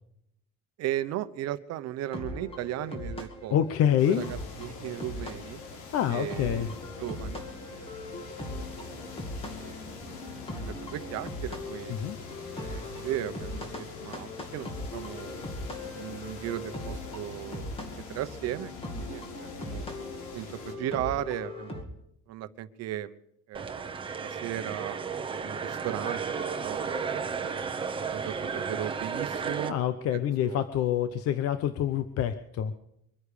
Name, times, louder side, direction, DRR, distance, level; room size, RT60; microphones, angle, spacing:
voice 1, 0.8-5.6 6.1-6.7 7.0-9.1 9.4-11.9 12.6-15.4 15.9-17.7 18.1-19.9 20.3-21.8 22.3-23.2 23.5-25.0 25.4-27.7 28.1-30.6, right 13 dB, 60° right, 12 dB, 1.0 m, -37 dB
sound 1, 2.0-21.8, left 2 dB, 20° left, 2.2 m, -40 dB
voice 2, 3.5-4.2 5.9-6.7 11.9-12.2 29.7-32.7, left 10 dB, 50° left, 11 dB, 0.9 m, -26 dB
sound 2, 4.0-20.8, left 4 dB, 90° left, 3.4 m, -45 dB
sound 3, 23.5-29.7, right 5 dB, 15° right, 1.0 m, -33 dB
23.5 x 9.9 x 5.1 m, 0.78 s
cardioid pair, 160°, 30 cm